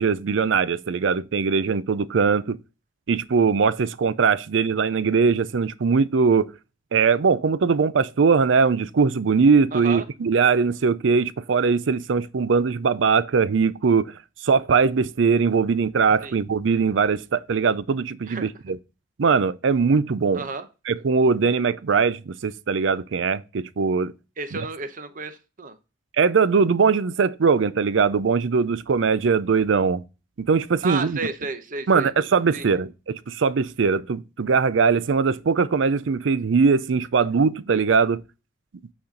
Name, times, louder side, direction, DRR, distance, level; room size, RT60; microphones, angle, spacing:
voice 1, 0.0-2.6 3.1-6.5 6.9-18.8 19.2-20.4 20.9-24.1 26.2-30.0 30.5-31.2 31.9-38.2, right 5 dB, 80° right, 0.5 m, -21 dB
voice 2, 9.7-10.0 16.2-16.4 18.3-18.5 20.3-20.7 24.4-25.8 30.8-32.1 32.5-32.7, right 4 dB, 45° right, 0.8 m, -32 dB
8.6 x 4.2 x 3.9 m
head